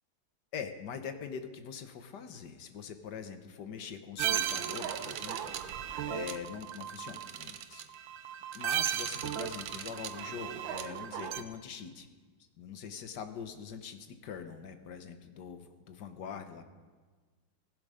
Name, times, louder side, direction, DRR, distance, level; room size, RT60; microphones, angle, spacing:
voice 1, 0.5-5.5 6.1-7.9 8.5-12.1 12.6-16.6, left 7 dB, 65° left, 8 dB, 1.7 m, -43 dB
sound 1, 4.2-11.4, right 10 dB, 90° right, 1.6 m, -36 dB
16.5 x 15.0 x 5.1 m, 1.4 s
omnidirectional pair, 2.0 m